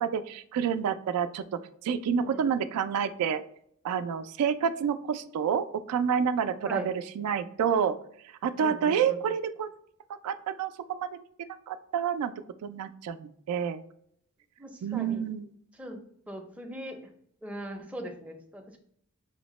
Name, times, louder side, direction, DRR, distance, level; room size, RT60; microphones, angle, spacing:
voice 1, 0.0-1.4 1.8-3.4 3.8-8.0 8.4-9.7 10.2-12.3 12.6-13.8 14.8-15.5, right 7 dB, 80° right, 13 dB, 0.3 m, -29 dB
voice 2, 8.6-9.2 14.6-15.2 15.8-16.0 16.3-17.0 17.4-18.8, equal, 5° right, 3 dB, 0.5 m, -40 dB
5.6 x 2.0 x 3.0 m, 0.67 s
head